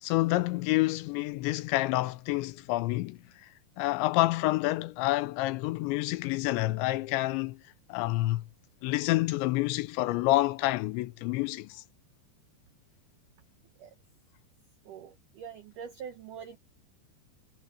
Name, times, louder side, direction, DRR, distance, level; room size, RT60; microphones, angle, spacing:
voice 1, 0.0-3.2 3.8-7.6 7.9-8.5 8.8-11.8, left 18 dB, 90° left, 3.0 m, -28 dB
voice 2, 14.9-16.6, right 7 dB, 85° right, 1.8 m, -44 dB
omnidirectional pair, 5.3 m